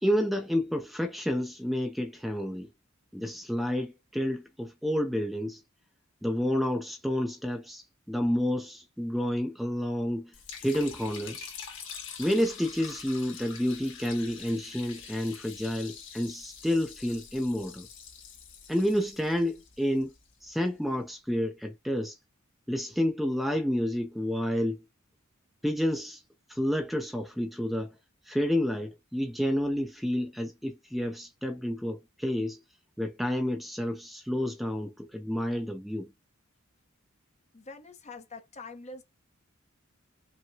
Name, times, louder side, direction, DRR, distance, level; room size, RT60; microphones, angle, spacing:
voice 1, 0.0-2.7 3.1-5.6 6.2-10.3 10.6-11.5 12.2-17.9 18.7-20.1 20.4-22.2 22.7-24.8 25.6-26.2 26.5-27.9 28.3-32.6 33.0-36.1, equal, ahead, 0.6 m, -30 dB
Liquid, 10.3-20.5, left 7 dB, 60° left, 2.1 m, -45 dB
voice 2, 37.5-39.0, left 3 dB, 30° left, 0.9 m, -44 dB
5.8 x 2.2 x 2.7 m
head